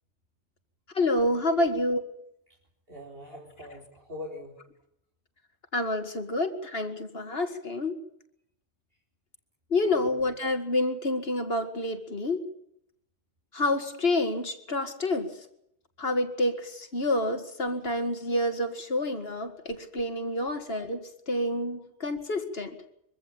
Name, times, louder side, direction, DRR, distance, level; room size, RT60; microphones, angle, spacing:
voice 1, 0.9-2.0 5.7-7.9 9.7-12.4 13.5-15.3 16.0-22.8, left 1 dB, 60° left, 7 dB, 2.4 m, -28 dB
voice 2, 2.9-4.5 9.9-10.1, left 2 dB, 55° right, -3 dB, 4.2 m, -42 dB
24.0 x 15.5 x 8.9 m, 0.76 s
omnidirectional pair, 1.2 m